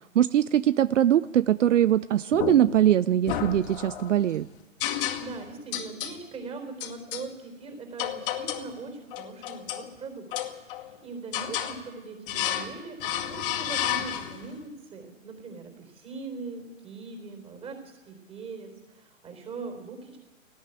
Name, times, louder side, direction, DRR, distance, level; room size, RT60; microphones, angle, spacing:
voice 1, 0.1-4.5, right 11 dB, 65° right, 17 dB, 0.6 m, -22 dB
sound 1, 2.3-2.9 3.3-4.1 4.8-5.4 5.7-6.2 6.8-7.3 8.0-8.7 9.1-9.9 10.3-10.9 11.3-11.8 12.3-12.7 13.0-14.5, left 10 dB, 40° left, 2.2 m, -31 dB
voice 2, 5.2-10.3 10.6-20.2, right 4 dB, 15° right, 5 dB, 4.1 m, -41 dB
18.0 x 17.0 x 9.1 m, 1.1 s
hypercardioid pair, 130°, 40 cm